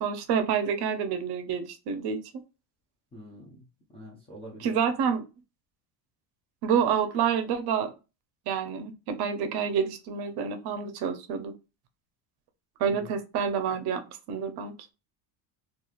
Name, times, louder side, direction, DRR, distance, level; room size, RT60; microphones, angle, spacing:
voice 1, 0.0-2.2 4.6-5.3 6.6-7.9 8.5-11.5 12.8-14.7, right 7 dB, 55° right, 0.6 m, -28 dB
voice 2, 3.1-3.7 3.9-4.8 12.9-13.1, equal, 15° left, 0.4 m, -45 dB
3.0 x 2.4 x 2.3 m
cardioid pair, 145°, 48 cm